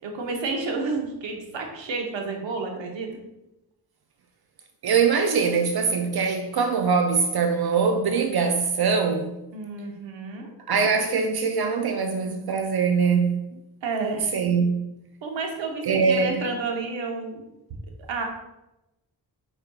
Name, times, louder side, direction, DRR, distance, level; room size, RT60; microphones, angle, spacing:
voice 1, 0.0-3.1 9.5-10.5 13.8-14.3 15.2-17.4 18.1-18.3, right 3 dB, 85° right, 0.9 m, -30 dB
voice 2, 4.8-9.4 10.7-13.4 14.0-14.7 15.8-16.4, right 5 dB, 60° right, 0.5 m, -22 dB
5.0 x 4.4 x 2.3 m
cardioid pair, 85°, 43 cm